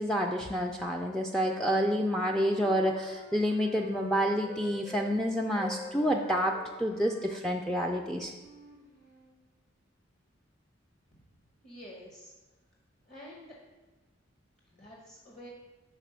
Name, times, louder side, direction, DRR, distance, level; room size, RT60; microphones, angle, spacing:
voice 1, 0.0-8.3, equal, 5° left, 0 dB, 0.3 m, -29 dB
Wind instrument woodwind instrument, 2.1-5.1 5.4-9.3, left 1 dB, 60° left, 1.6 m, -48 dB
voice 2, 11.6-12.3 13.1-13.6 14.7-15.5, equal, 35° left, -3 dB, 0.9 m, -48 dB
5.0 x 3.9 x 5.5 m, 1.2 s
head